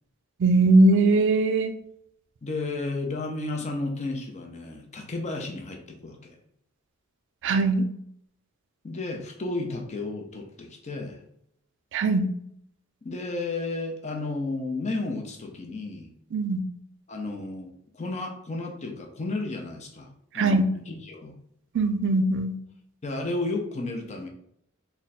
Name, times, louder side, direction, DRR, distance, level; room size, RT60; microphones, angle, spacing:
voice 1, 0.4-1.8 7.4-7.9 11.9-12.3 16.3-16.6 20.3-20.7 21.7-22.5, right 2 dB, 60° right, 8 dB, 0.4 m, -20 dB
voice 2, 2.4-6.4 8.8-11.2 13.0-16.1 17.1-20.1 20.3-21.4 23.0-24.3, left 2 dB, 35° left, 2 dB, 0.6 m, -33 dB
3.5 x 2.2 x 4.1 m, 0.72 s
head